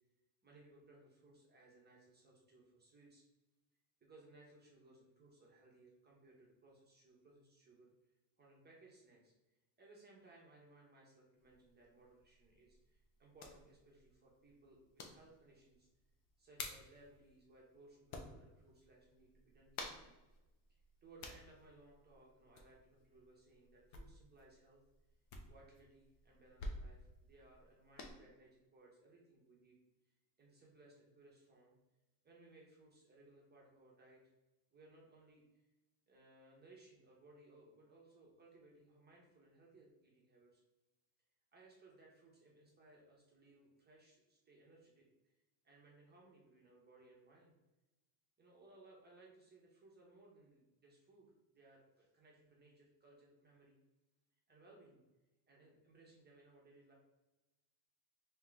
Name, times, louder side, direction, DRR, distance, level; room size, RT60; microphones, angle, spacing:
voice 1, 0.4-3.2 4.0-7.9 8.4-15.9 16.4-20.1 20.7-24.8 25.5-29.8 30.0-31.7 32.2-34.3 34.7-35.7 36.1-40.6 41.5-45.3 45.6-47.5 48.4-53.8 54.5-55.0 55.5-56.9, right 2 dB, 20° right, -3 dB, 0.9 m, -64 dB
sound 1, 11.4-28.1, left 2 dB, 70° left, 0.9 m, -54 dB
3.6 x 2.9 x 3.4 m, 1.0 s
cardioid pair, 135°, 49 cm